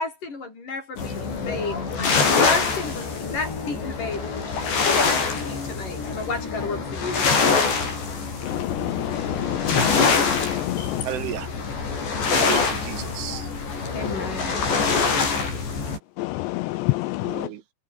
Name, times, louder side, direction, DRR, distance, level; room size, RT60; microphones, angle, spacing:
voice 1, 0.0-4.3 4.8-7.3 10.8-10.9 13.9-14.7, left 3 dB, 45° left, 8.6 m, -31 dB
sound 1, 1.0-16.0, left 5 dB, 65° left, 9.5 m, -25 dB
voice 2, 8.4-11.0 16.2-17.5, left 20 dB, 80° left, 2.6 m, -28 dB
voice 3, 11.0-11.5 12.3-13.5 17.2-17.6, right 12 dB, 85° right, 4.5 m, -33 dB
omnidirectional pair, 5.4 m